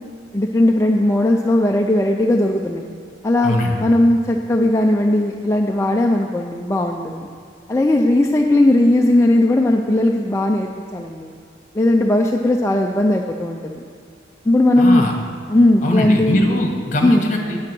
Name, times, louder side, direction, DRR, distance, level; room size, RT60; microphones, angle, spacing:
voice 1, 0.3-2.8 3.2-7.3 7.7-11.3 11.7-13.8 14.5-15.0 15.5-16.4 17.0-17.3, left 1 dB, 15° left, 1 dB, 0.4 m, -17 dB
voice 2, 14.8-15.1 15.8-17.6, left 1 dB, 40° left, 2 dB, 1.4 m, -21 dB
8.8 x 8.6 x 6.1 m, 2.2 s
head